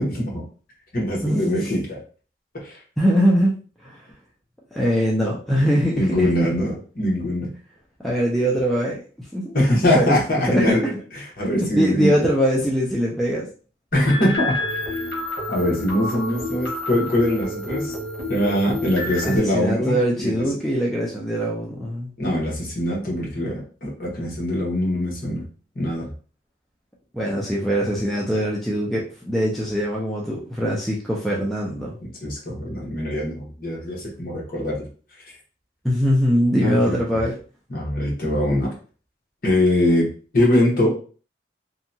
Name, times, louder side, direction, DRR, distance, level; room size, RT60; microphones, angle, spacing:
voice 1, 0.1-0.4 0.9-2.0 2.5-2.8 6.0-7.5 9.5-10.9 11.2-12.1 13.9-14.5 15.5-17.9 18.3-20.4 22.2-25.4 25.7-26.1 32.2-34.9 36.6-37.2 37.7-38.7 39.4-40.1 40.3-40.9, left 1 dB, 50° left, -3 dB, 1.1 m, -22 dB
voice 2, 1.2-1.7 3.0-3.6 3.8-4.0 4.7-6.3 8.0-9.0 9.3-9.5 9.9-10.2 10.5-10.9 11.4-13.5 19.2-22.1 27.1-31.9 35.8-37.3, equal, ahead, -4 dB, 0.4 m, -22 dB
sound 1, 14.0-19.4, left 1 dB, 75° left, 1.1 m, -29 dB
2.8 x 2.2 x 2.6 m, 0.39 s
head